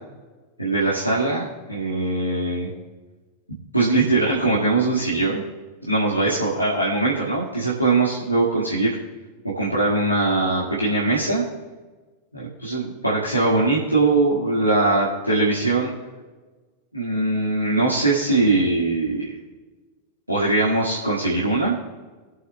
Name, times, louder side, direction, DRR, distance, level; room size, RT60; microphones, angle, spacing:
voice 1, 0.6-2.7 3.7-5.4 5.8-9.0 9.6-11.4 12.3-15.9 16.9-19.4 20.3-21.8, right 2 dB, 90° left, -7 dB, 1.9 m, -21 dB
22.5 x 7.7 x 2.4 m, 1.3 s
figure-of-eight pair, 90°, 0 cm